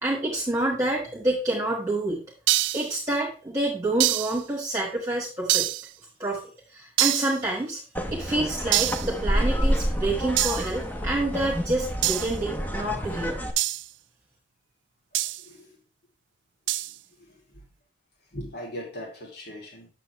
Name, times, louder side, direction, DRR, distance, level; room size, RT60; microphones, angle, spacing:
voice 1, 0.0-2.2 2.7-5.7 6.2-6.4 6.7-7.8 8.1-13.4, right 1 dB, 15° right, -3 dB, 1.7 m, -28 dB
sound 1, 2.5-2.9 4.0-4.4 5.5-5.9 7.0-7.4 8.7-9.1 10.4-10.7 12.0-12.4 13.6-13.9 15.1-15.4 16.7-16.9, right 16 dB, 70° right, 0.4 m, -25 dB
sound 2, 7.9-13.5, equal, 10° left, 0.8 m, -28 dB
voice 2, 15.4-15.7 17.2-17.6 18.3-19.9, equal, 55° left, 0 dB, 2.7 m, -39 dB
8.6 x 6.8 x 3.2 m, 0.35 s
head